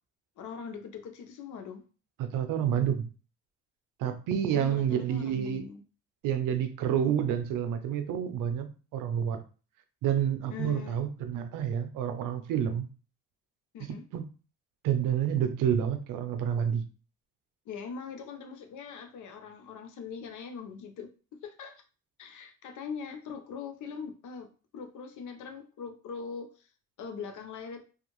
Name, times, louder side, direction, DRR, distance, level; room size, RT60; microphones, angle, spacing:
voice 1, 0.4-1.8 4.5-5.8 10.5-11.0 13.7-14.0 17.7-21.1 21.4-21.8 22.2-26.5 27.0-27.8, left 6 dB, 70° left, 6 dB, 0.7 m, -41 dB
voice 2, 2.2-3.1 4.0-5.7 6.2-9.4 10.0-12.9 13.8-14.2 14.8-16.8, right 9 dB, 85° right, 8 dB, 0.5 m, -29 dB
2.6 x 2.4 x 2.9 m, 0.36 s
cardioid pair, 75°, 32 cm